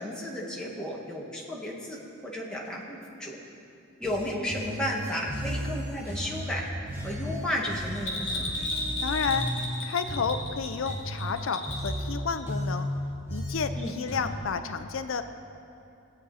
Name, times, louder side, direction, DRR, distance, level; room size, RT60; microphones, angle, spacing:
voice 1, 0.0-3.4 4.0-6.6 7.0-8.5 13.7-14.0, left 1 dB, 5° left, -4 dB, 1.7 m, -33 dB
sound 1, 4.0-14.5, equal, 10° right, 1.4 m, -35 dB
Bell, 7.9-12.1 12.4-12.5, left 2 dB, 65° left, 2.3 m, -34 dB
voice 2, 9.0-9.5 9.8-12.9 13.3-15.2, left 5 dB, 80° left, 9 dB, 0.5 m, -31 dB
20.5 x 8.7 x 4.2 m, 2.6 s
head